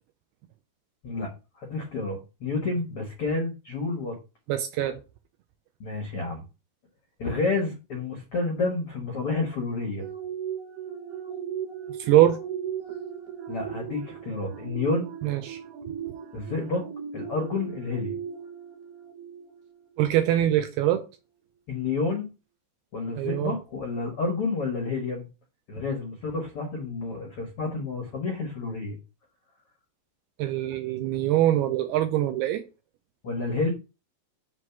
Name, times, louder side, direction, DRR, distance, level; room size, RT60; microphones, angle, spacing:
voice 1, 1.6-4.1 5.8-6.4 7.2-10.1 13.5-15.1 16.3-16.8 17.1-18.2 21.7-22.3 22.9-25.3 25.7-29.0 33.2-33.7, left 3 dB, 80° left, 1.2 m, -29 dB
voice 2, 4.5-5.0 12.0-12.4 15.2-15.6 20.0-21.0 23.2-23.6 30.4-32.6, right 13 dB, 85° right, 2.3 m, -23 dB
sound 1, 10.0-19.9 20.3-20.5, right 8 dB, 70° right, 1.9 m, -37 dB
7.4 x 3.2 x 5.8 m
omnidirectional pair, 5.1 m